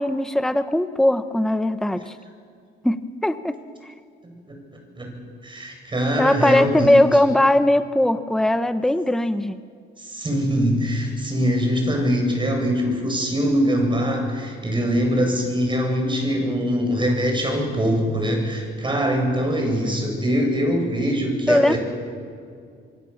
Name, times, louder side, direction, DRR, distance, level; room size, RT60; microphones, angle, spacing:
voice 1, 0.0-2.1 2.8-3.6 6.2-9.6 21.5-21.8, left 1 dB, ahead, 10 dB, 1.0 m, -19 dB
voice 2, 4.2-7.0 10.0-21.8, equal, 25° right, 3 dB, 7.7 m, -23 dB
25.0 x 24.5 x 7.2 m, 2.2 s
cardioid pair, 90°, 20 cm